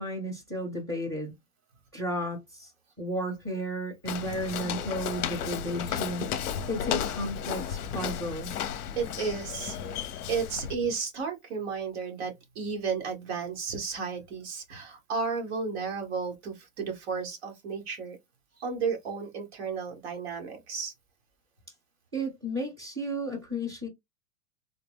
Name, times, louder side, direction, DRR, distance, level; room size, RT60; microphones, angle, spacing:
voice 1, 0.0-1.3 1.9-2.7 3.0-8.5 22.1-23.9, equal, 20° right, 0.3 m, -33 dB
Walk footsteps, 4.1-10.8, left 8 dB, 70° left, 0.7 m, -34 dB
voice 2, 9.0-18.2 18.6-20.9, right 5 dB, 40° right, 1.1 m, -33 dB
3.7 x 2.2 x 3.4 m
supercardioid pair, 180°, 48 cm